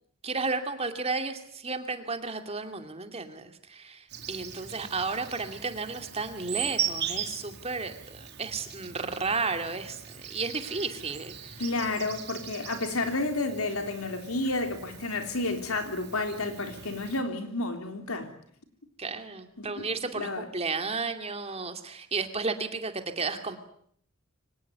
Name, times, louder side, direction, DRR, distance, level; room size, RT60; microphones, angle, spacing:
voice 1, 0.2-11.6 19.0-23.6, right 4 dB, 30° right, 2.5 m, -33 dB
Insect, 4.1-17.2, right 8 dB, 50° right, 5.6 m, -39 dB
voice 2, 11.6-18.3 19.6-19.9 20.1-20.5, left 2 dB, 85° left, 3.6 m, -31 dB
24.5 x 19.0 x 9.4 m
head